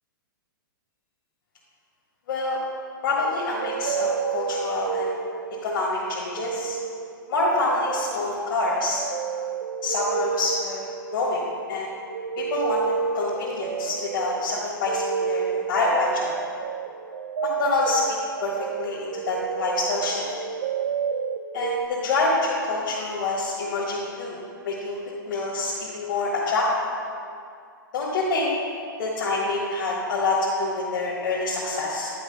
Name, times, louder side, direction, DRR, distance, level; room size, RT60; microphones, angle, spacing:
voice 1, 2.3-2.6 3.0-5.2 5.6-6.8 7.3-9.0 9.4-9.6 9.8-11.4 11.7-11.9 12.4-12.8 13.1-16.3 17.6-20.2 21.5-24.4 24.6-25.0 25.2-26.7 27.9-28.5 29.0-32.1, left 2 dB, 60° left, -6 dB, 1.7 m, -26 dB
sound 1, 3.5-5.9 6.1-21.9, right 6 dB, 70° right, 0.4 m, -31 dB
10.0 x 4.9 x 5.4 m, 2.4 s
hypercardioid pair, 115°, 12 cm